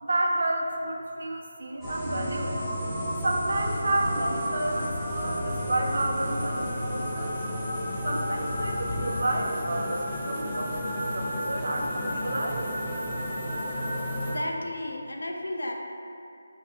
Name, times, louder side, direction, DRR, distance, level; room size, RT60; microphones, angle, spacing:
voice 1, 0.0-2.5 3.2-7.4 8.0-12.7, right 1 dB, 60° right, 1 dB, 0.3 m, -30 dB
sound 1, 1.8-14.4, equal, ahead, 0.5 m, -32 dB
sound 2, 2.6-9.0, left 1 dB, 60° left, 0.8 m, -41 dB
voice 2, 14.3-15.7, left 1 dB, 75° left, 1 dB, 0.3 m, -33 dB
3.2 x 2.4 x 2.6 m, 2.5 s
figure-of-eight pair, 160°, 0 cm